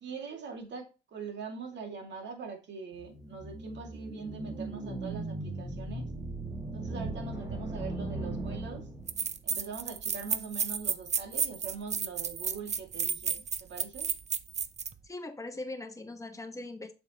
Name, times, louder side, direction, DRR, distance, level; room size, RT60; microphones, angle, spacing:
voice 1, 0.0-6.1 6.7-8.9 9.4-14.1, right 5 dB, 65° right, 3 dB, 2.2 m, -42 dB
sound 1, 3.0-9.3, right 2 dB, 20° right, 2.1 m, -38 dB
sound 2, 8.5-8.6 9.1-14.9, right 6 dB, 35° right, 0.6 m, -32 dB
voice 2, 15.0-16.9, left 2 dB, 15° left, 6 dB, 1.2 m, -40 dB
7.2 x 5.7 x 2.9 m, 0.30 s
cardioid pair, 90°, 20 cm